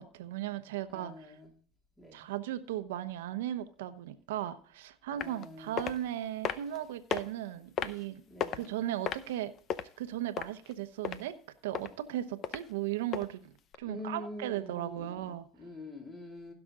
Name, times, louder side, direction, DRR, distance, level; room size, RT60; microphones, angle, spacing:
voice 1, 0.0-1.1 2.1-8.2 8.5-9.5 10.0-11.3 11.6-15.4, right 12 dB, 85° right, 10 dB, 0.9 m, -37 dB
voice 2, 0.9-1.5 2.0-2.2 5.2-5.9 8.3-8.7 13.8-16.5, left 1 dB, 10° left, 0 dB, 2.7 m, -45 dB
sound 1, 5.2-5.4 5.8-6.0 6.4-6.8 7.1-7.2 7.8-8.0 8.4-8.7 9.1-9.8 10.4-10.7 11.0-11.2 11.7-11.9 12.4-12.6 13.1-13.3 13.7-13.8, left 8 dB, 45° left, 0.7 m, -33 dB
16.0 x 6.0 x 3.7 m, 0.43 s
supercardioid pair, 105°, 0 cm